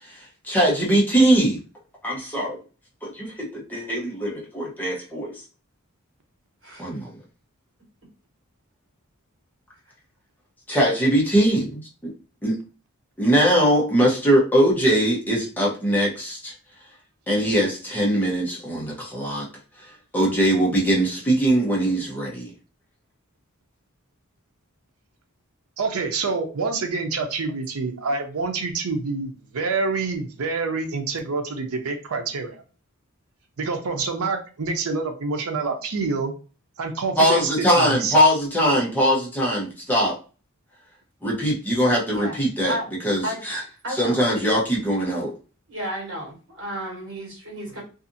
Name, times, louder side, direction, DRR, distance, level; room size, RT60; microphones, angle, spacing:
voice 1, 0.0-1.6 2.0-2.6 3.0-5.4 6.8-7.2 10.7-11.7 12.4-12.6 13.2-16.5 17.3-19.5 19.8-22.5 37.2-40.2 41.2-43.6 43.9-45.3, equal, 10° left, -4 dB, 0.7 m, -21 dB
voice 2, 25.8-32.6 33.6-36.3 36.8-37.5 37.8-38.1, right 4 dB, 90° right, 5 dB, 0.6 m, -27 dB
voice 3, 43.8-44.2 45.7-47.8, equal, 60° right, -5 dB, 1.4 m, -32 dB
2.6 x 2.4 x 2.6 m, 0.35 s
head